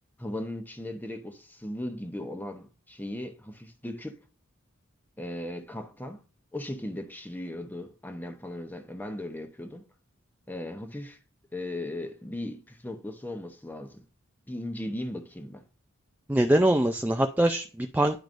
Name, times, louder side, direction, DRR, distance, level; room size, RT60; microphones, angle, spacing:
voice 1, 0.2-4.2 5.2-6.2 6.5-9.8 10.5-11.2 11.5-14.0 14.5-15.6, left 1 dB, 10° left, 0.8 m, -37 dB
voice 2, 16.3-18.2, right 1 dB, 10° right, 0.3 m, -23 dB
10.5 x 4.7 x 2.6 m
head